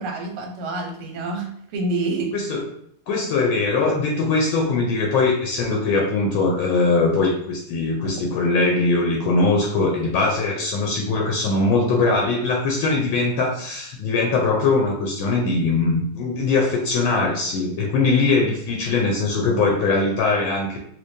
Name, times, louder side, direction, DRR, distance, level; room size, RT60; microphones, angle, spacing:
voice 1, 0.0-2.3 8.0-8.1, right 2 dB, 85° right, 2 dB, 1.7 m, -27 dB
voice 2, 3.1-20.8, left 3 dB, 75° left, 0 dB, 1.3 m, -21 dB
4.4 x 2.3 x 2.6 m, 0.70 s
omnidirectional pair, 2.4 m